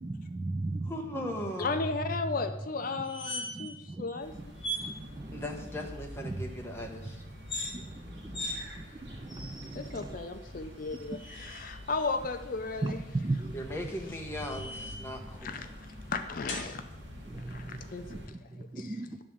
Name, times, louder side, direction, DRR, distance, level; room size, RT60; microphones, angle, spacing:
voice 1, 0.0-0.9 3.5-4.0 4.3-4.4 4.7-5.4 6.2-6.4 7.6-10.2 12.8-13.6 17.3-19.2, right 2 dB, 20° right, 7 dB, 0.3 m, -37 dB
voice 2, 0.8-1.8 5.3-7.2 13.5-15.6, left 1 dB, 15° left, 1 dB, 1.0 m, -38 dB
voice 3, 1.6-4.5 8.4-8.5 9.7-13.0 15.4-16.8 17.5-19.0, left 4 dB, 45° left, 8 dB, 0.4 m, -35 dB
sound 1, 2.9-3.8 4.1-4.2 4.6-4.9 7.3-7.7 8.3-8.6 9.3-9.9 10.8-11.6 13.5-15.1 16.5-16.7, equal, 60° left, 1.9 m, -39 dB
sound 2, 4.2-18.3, left 1 dB, 65° right, 1.7 m, -47 dB
11.0 x 3.7 x 6.9 m, 0.97 s
head